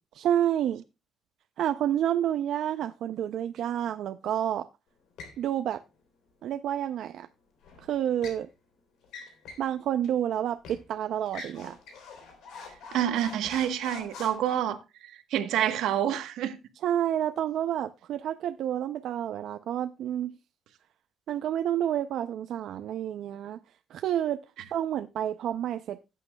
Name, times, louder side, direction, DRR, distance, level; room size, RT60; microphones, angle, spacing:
voice 1, 0.2-0.8 1.6-4.6 5.4-5.8 6.4-7.3 7.8-8.5 9.6-11.7 16.8-20.4 21.3-23.6 23.9-24.4 24.7-26.0, right 10 dB, 65° right, 0.5 m, -29 dB
sound 1, 5.2-5.4 7.6-8.4 9.0-9.7 10.0-10.2 10.6-10.8 11.3-14.5, left 4 dB, 80° left, 3.3 m, -45 dB
voice 2, 12.9-16.6, right 10 dB, 80° right, 1.1 m, -28 dB
17.0 x 8.4 x 2.2 m
cardioid pair, 150°, 0 cm